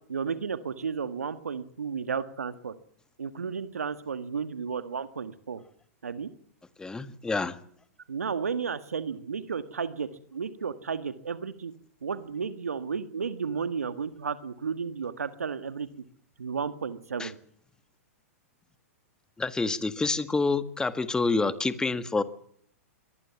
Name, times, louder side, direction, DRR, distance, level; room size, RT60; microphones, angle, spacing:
voice 1, 0.1-2.7 3.2-5.6 6.0-6.3 8.1-11.7 12.0-15.9 16.4-17.4, right 6 dB, 85° right, 11 dB, 1.8 m, -33 dB
voice 2, 6.8-7.6 17.2-17.3 19.4-22.2, left 3 dB, 10° left, 12 dB, 1.7 m, -27 dB
23.5 x 19.0 x 7.2 m, 0.64 s
hypercardioid pair, 115°, 8 cm